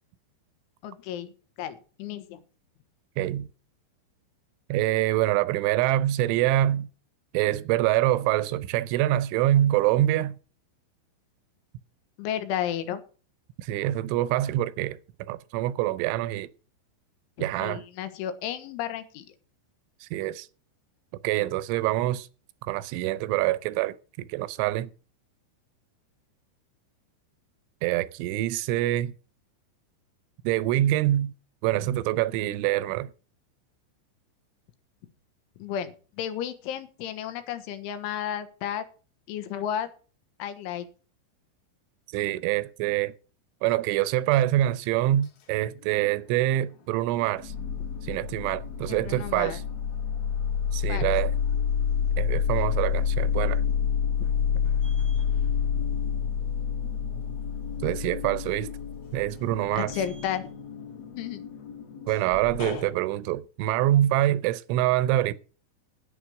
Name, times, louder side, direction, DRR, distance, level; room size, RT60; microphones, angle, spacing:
voice 1, 0.8-1.3 1.6-2.4 12.2-13.0 17.4-19.3 35.6-38.9 39.3-39.9 40.4-40.9 48.9-49.6 50.9-51.1 59.8-60.5 61.2-61.4, left 10 dB, 85° left, 3.6 m, -33 dB
voice 2, 3.2-3.5 4.7-6.9 7.3-10.4 13.6-16.5 17.4-17.8 20.0-20.5 21.2-22.3 22.6-24.9 27.8-29.1 30.4-31.3 31.6-33.1 42.1-43.1 43.6-47.5 48.0-49.6 50.7-51.3 52.2-53.6 57.8-58.7 59.1-59.9 62.1-65.3, right 14 dB, 85° right, 3.1 m, -25 dB
sound 1, 45.8-46.6 47.0-62.9, left 7 dB, 55° left, 3.2 m, -29 dB
10.0 x 9.2 x 6.2 m
omnidirectional pair, 5.5 m